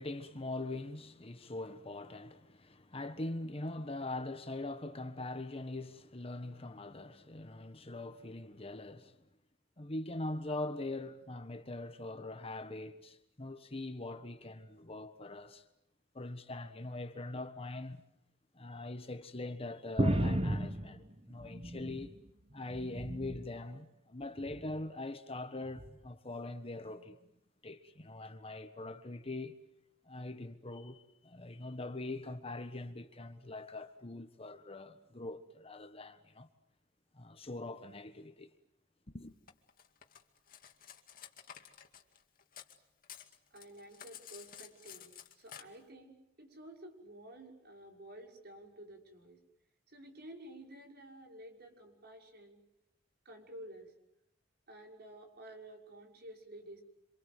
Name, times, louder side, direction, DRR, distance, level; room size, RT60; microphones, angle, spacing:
voice 1, 0.0-9.2 9.8-15.6 16.1-18.0 18.5-22.1 22.5-27.2 27.6-29.5 30.0-36.5 37.1-38.5 39.1-39.3, left 2 dB, 30° left, 1.4 m, -42 dB
sound 1, 20.0-22.2 22.6-23.5 24.4-24.8 25.8-25.9, right 1 dB, 30° right, 1.3 m, -34 dB
Cutlery silverware, 39.5-42.8 43.0-45.6, left 9 dB, 50° left, 2.4 m, -52 dB
voice 2, 43.5-49.4 49.9-52.6 53.2-53.9 54.7-56.8, right 1 dB, 55° right, 6.1 m, -52 dB
27.5 x 27.0 x 7.9 m
head